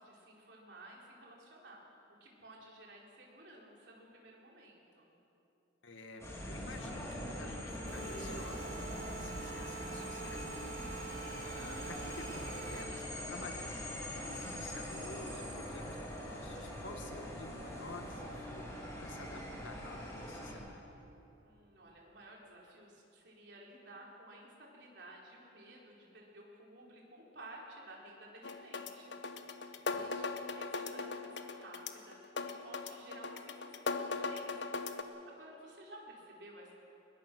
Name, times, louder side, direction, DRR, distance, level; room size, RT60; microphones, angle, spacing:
voice 1, 0.0-1.8 2.2-5.1 21.4-29.2 29.7-32.2 32.4-34.7 35.1-36.7, right 1 dB, 65° right, -2 dB, 4.3 m, -54 dB
voice 2, 5.8-10.7 11.1-13.7 14.1-18.7 19.0-21.1 29.9-30.1, left 2 dB, 85° left, 4 dB, 2.1 m, -50 dB
sound 1, 6.2-20.5, equal, 15° left, 3.5 m, -43 dB
sound 2, 7.8-12.8, right 6 dB, 45° right, 2.2 m, -47 dB
sound 3, 28.4-35.0, left 4 dB, 65° left, 1.1 m, -39 dB
22.0 x 21.0 x 6.3 m, 2.8 s
head